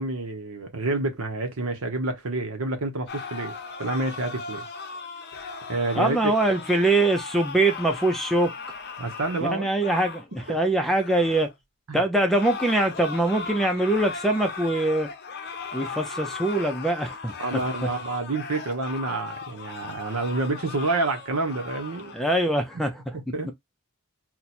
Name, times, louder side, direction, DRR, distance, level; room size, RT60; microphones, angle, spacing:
voice 1, 0.0-4.7 5.7-6.3 9.0-9.7 10.5-10.6 11.9-12.0 17.4-22.2 23.1-23.5, right 2 dB, 70° right, 0.8 m, -28 dB
sound 1, 3.1-11.5 12.2-22.2, left 5 dB, 45° left, 0.6 m, -37 dB
voice 2, 5.9-8.5 9.5-11.5 11.9-15.1 15.7-17.6 22.1-23.2, right 2 dB, ahead, 0.5 m, -23 dB
2.9 x 2.2 x 4.1 m
head